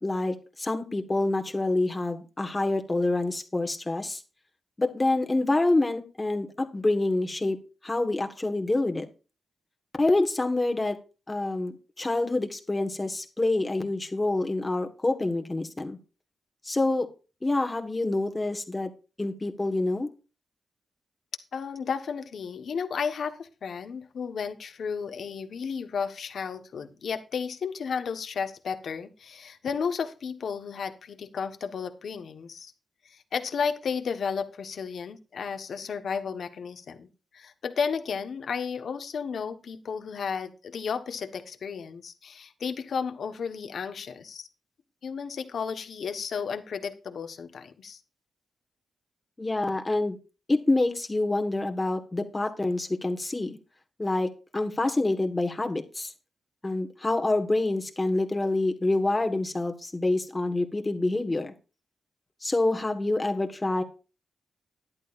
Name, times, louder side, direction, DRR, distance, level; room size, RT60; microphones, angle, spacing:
voice 1, 0.0-4.2 4.8-7.6 7.8-9.1 10.0-11.0 11.3-16.0 16.6-17.1 17.4-18.9 19.2-20.1 49.4-50.2 50.5-53.6 54.0-56.1 56.6-61.5 62.4-63.8, left 2 dB, 20° left, 5 dB, 1.5 m, -27 dB
voice 2, 21.5-32.7 33.1-37.1 37.3-44.5 45.0-48.0, left 6 dB, 70° left, 8 dB, 1.2 m, -33 dB
13.5 x 10.5 x 2.5 m, 0.33 s
cardioid pair, 85°, 0 cm